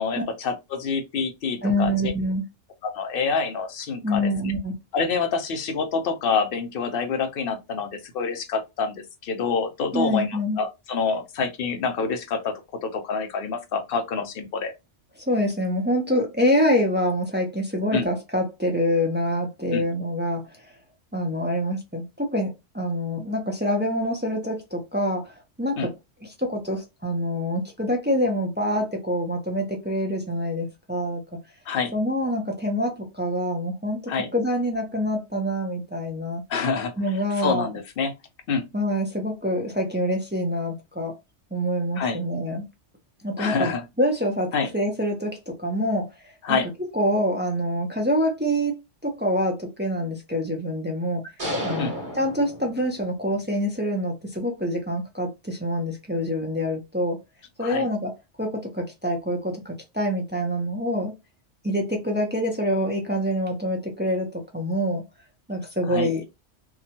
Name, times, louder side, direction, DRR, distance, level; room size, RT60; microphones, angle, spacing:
voice 1, 0.0-2.1 2.8-4.5 4.9-14.7 17.9-18.1 19.7-19.8 25.8-25.9 31.7-31.9 34.1-34.3 36.5-36.9 37.4-38.1 38.5-38.7 42.0-42.2 43.4-43.8 44.5-44.7 46.4-46.7 51.8-51.9 57.6-57.9 65.8-66.1, left 5 dB, 60° left, 0.7 m, -27 dB
voice 2, 1.6-2.4 4.0-4.7 9.9-10.6 15.2-20.7 21.1-25.9 26.4-31.2 31.9-36.4 37.0-37.8 38.7-41.1 41.5-42.6 43.2-46.1 46.5-48.7 49.0-51.2 51.6-57.2 57.6-58.1 58.4-61.1 61.6-65.0 65.5-66.2, equal, 15° right, 0.3 m, -26 dB
sound 1, 51.4-53.2, equal, 45° right, 1.3 m, -32 dB
2.8 x 2.2 x 2.7 m
omnidirectional pair, 1.3 m